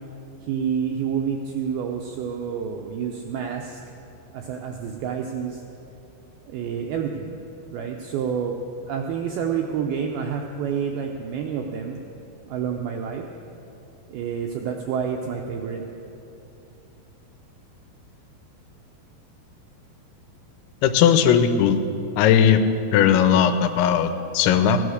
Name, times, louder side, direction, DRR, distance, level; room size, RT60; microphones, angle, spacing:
voice 1, 0.4-3.8 4.3-5.6 6.5-7.3 7.7-8.6 8.9-12.2 12.5-13.2 14.1-15.8, right 7 dB, 80° right, 2 dB, 2.2 m, -28 dB
voice 2, 20.8-21.8 22.2-22.6 22.9-24.8, left 8 dB, 85° left, 9 dB, 3.1 m, -18 dB
16.0 x 10.5 x 6.4 m, 2.7 s
omnidirectional pair, 5.2 m